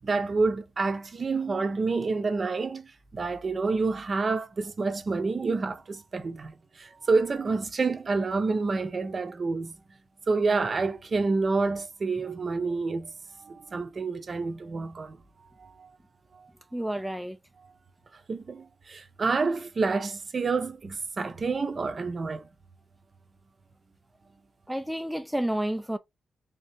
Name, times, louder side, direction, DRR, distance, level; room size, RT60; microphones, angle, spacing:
voice 1, 0.0-9.7 10.3-13.1 13.4-15.2 15.6-15.9 16.3-16.5 18.3-22.4, right 4 dB, 40° right, 0.6 m, -28 dB
voice 2, 16.7-17.4 24.7-26.0, right 1 dB, 5° right, 0.3 m, -30 dB
3.5 x 2.8 x 3.4 m
cardioid pair, 105°, 0 cm